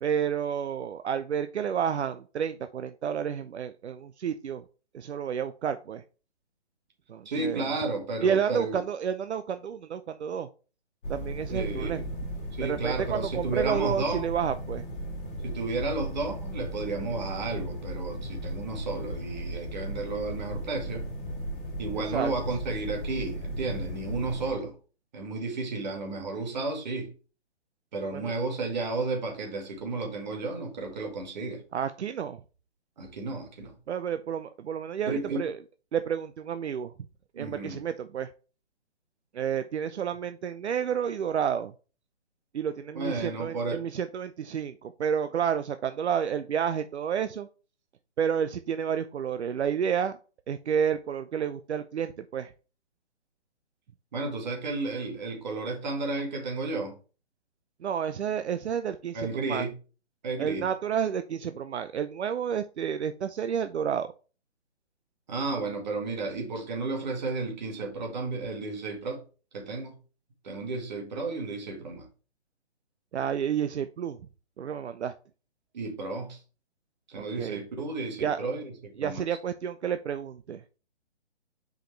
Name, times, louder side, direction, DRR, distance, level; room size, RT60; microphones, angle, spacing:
voice 1, 0.0-4.6 4.9-6.0 7.1-7.7 8.2-10.5 11.1-12.0 12.6-14.8 22.1-22.3 28.1-28.4 31.7-32.4 33.9-35.6 35.9-36.9 37.4-38.3 39.3-41.7 42.5-47.5 48.2-50.2 50.5-52.5 57.8-59.6 60.4-64.1 73.1-74.2 74.6-75.1 77.2-77.6 78.2-78.4 79.0-80.6, right 8 dB, 70° right, 0.6 m, -30 dB
voice 2, 7.3-8.8 11.5-12.0 12.5-14.3 15.4-21.1 21.8-24.8 25.1-27.1 27.9-31.6 33.0-33.8 35.0-35.4 37.3-37.8 43.0-43.8 54.1-57.0 59.1-59.7 60.2-60.7 65.3-69.2 69.5-70.0 70.4-72.1 75.7-76.4 77.1-79.2, right 3 dB, 40° right, 2.0 m, -33 dB
sound 1, 11.0-24.5, right 1 dB, 45° left, 2.6 m, -36 dB
6.4 x 5.1 x 3.2 m
hypercardioid pair, 165°, 35 cm